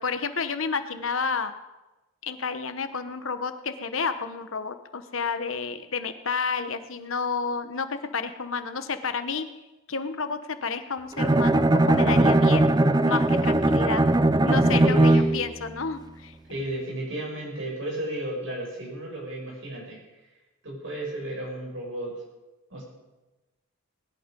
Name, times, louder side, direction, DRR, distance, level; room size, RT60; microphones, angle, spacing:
voice 1, 0.0-1.6 2.2-9.4 9.9-12.6 13.0-14.0 14.4-16.3, left 5 dB, 70° left, 10 dB, 1.1 m, -30 dB
Bowed string instrument, 11.2-15.6, right 2 dB, 20° right, 0.5 m, -20 dB
voice 2, 14.7-15.2 16.5-20.0 20.6-22.1 22.7-22.8, right 1 dB, 65° right, -2 dB, 6.5 m, -33 dB
20.5 x 11.5 x 5.3 m, 1.1 s
head